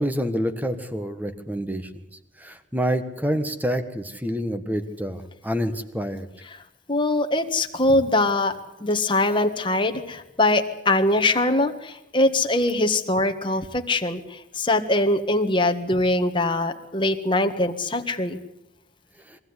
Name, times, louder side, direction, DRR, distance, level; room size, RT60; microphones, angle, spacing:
voice 1, 0.0-2.0 2.4-6.3, equal, 10° right, 9 dB, 1.5 m, -27 dB
voice 2, 6.9-8.5 8.8-18.4, left 2 dB, 25° left, 6 dB, 1.7 m, -22 dB
23.5 x 16.0 x 9.8 m, 0.89 s
head